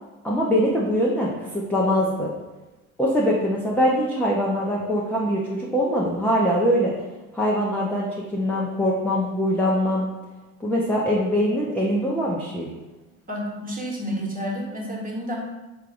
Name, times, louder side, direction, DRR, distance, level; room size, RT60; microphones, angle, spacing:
voice 1, 0.2-2.3 3.0-6.9 7.3-10.1 10.6-12.7, equal, 5° left, -5 dB, 0.6 m, -23 dB
voice 2, 13.3-15.4, equal, 20° right, -3 dB, 1.3 m, -30 dB
4.5 x 3.4 x 2.5 m, 1.1 s
hypercardioid pair, 65°, 41 cm